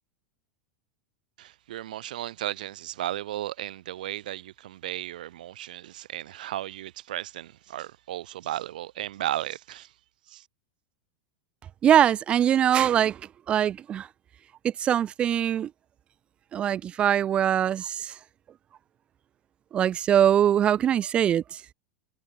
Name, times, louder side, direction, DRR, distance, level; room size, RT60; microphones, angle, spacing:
voice 1, 1.4-9.9 10.3-10.4, right 13 dB, 80° right, 6.0 m, -35 dB
voice 2, 11.8-13.2 13.5-14.1 14.8-15.7 16.5-18.1 19.7-21.4, right 10 dB, 25° right, 1.0 m, -22 dB
supercardioid pair, 150°, 4 cm